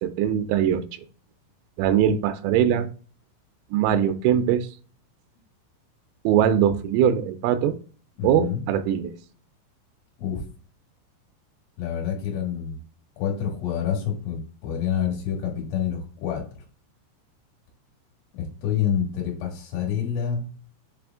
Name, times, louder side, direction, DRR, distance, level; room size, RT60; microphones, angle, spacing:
voice 1, 0.0-0.9 1.8-2.9 3.7-4.7 6.2-7.8 8.2-9.2, right 9 dB, 85° right, 7 dB, 3.0 m, -21 dB
voice 2, 8.2-8.6 10.2-10.5 11.8-12.8 13.2-16.5 18.3-20.4, left 8 dB, 70° left, 1 dB, 4.1 m, -27 dB
7.9 x 3.4 x 3.4 m, 0.40 s
omnidirectional pair, 6.0 m